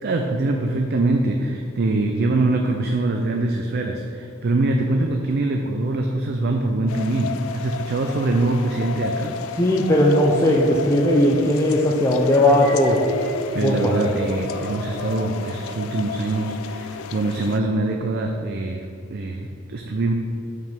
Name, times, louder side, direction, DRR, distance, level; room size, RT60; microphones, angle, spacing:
voice 1, 0.0-9.4 13.5-20.1, right 2 dB, 50° right, 3 dB, 0.4 m, -23 dB
sound 1, 6.9-17.6, left 6 dB, 75° left, 0.3 m, -33 dB
voice 2, 9.6-13.0 13.6-13.9, left 1 dB, 15° left, -3 dB, 0.5 m, -18 dB
sound 2, 12.2-16.8, left 1 dB, 55° left, 0.9 m, -33 dB
5.4 x 5.0 x 6.0 m, 2.6 s
head